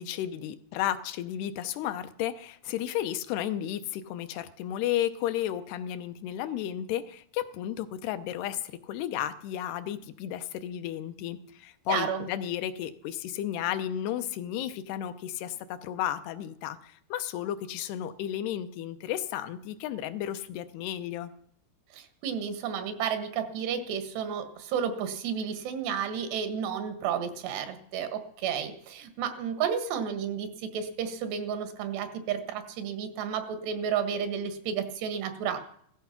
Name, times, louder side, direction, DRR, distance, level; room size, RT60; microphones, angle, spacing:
voice 1, 0.0-21.3, left 11 dB, 80° left, 10 dB, 2.9 m, -33 dB
voice 2, 11.9-12.3 21.9-35.6, right 7 dB, 85° right, 9 dB, 3.6 m, -32 dB
16.5 x 13.5 x 5.8 m, 0.66 s
omnidirectional pair, 4.7 m